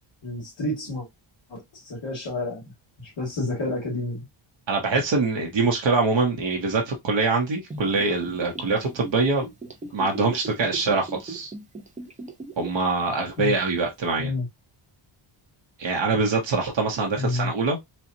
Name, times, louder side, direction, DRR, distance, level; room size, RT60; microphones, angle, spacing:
voice 1, 0.2-1.1 1.5-2.6 3.0-4.2 13.4-13.5 14.2-14.5 17.2-17.5, left 2 dB, 60° left, 2.1 m, -29 dB
voice 2, 4.7-9.4 9.9-11.5 12.6-14.3 15.8-17.8, right 3 dB, 60° right, 1.1 m, -24 dB
Gurgling / Bathtub (filling or washing), 7.7-12.9 13.2-13.3, right 2 dB, 15° right, 0.6 m, -38 dB
4.5 x 2.4 x 2.7 m
wide cardioid pair, 160°, 50 cm